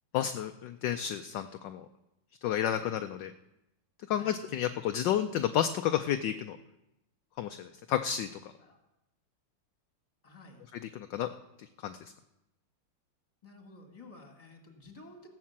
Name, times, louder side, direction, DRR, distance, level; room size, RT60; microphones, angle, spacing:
voice 1, 0.1-1.9 2.4-3.3 4.1-6.6 7.4-8.5 10.9-11.3 11.6-12.0, left 10 dB, 70° left, 8 dB, 1.2 m, -31 dB
voice 2, 10.2-10.7 13.4-15.3, left 2 dB, 15° left, 3 dB, 2.1 m, -52 dB
17.0 x 7.5 x 7.3 m, 0.91 s
omnidirectional pair, 2.3 m